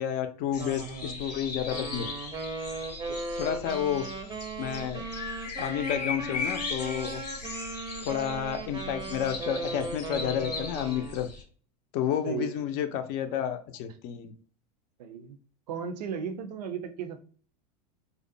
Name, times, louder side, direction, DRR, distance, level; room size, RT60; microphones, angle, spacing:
voice 1, 0.0-2.0 3.4-4.0 4.6-5.0 5.6-7.2 8.0-11.3 11.9-14.3, left 9 dB, 50° left, 7 dB, 0.4 m, -30 dB
sound 1, 0.5-11.4, left 4 dB, 90° left, 0.7 m, -38 dB
voice 2, 0.6-1.2 3.1-3.5 8.3-8.5 10.0-10.1 12.2-12.8 15.0-15.4 15.7-17.2, right 7 dB, 80° right, 8 dB, 0.5 m, -37 dB
Wind instrument woodwind instrument, 1.7-11.3, right 3 dB, 20° right, 0.5 m, -37 dB
2.5 x 2.0 x 2.6 m, 0.42 s
hypercardioid pair, 95°, 21 cm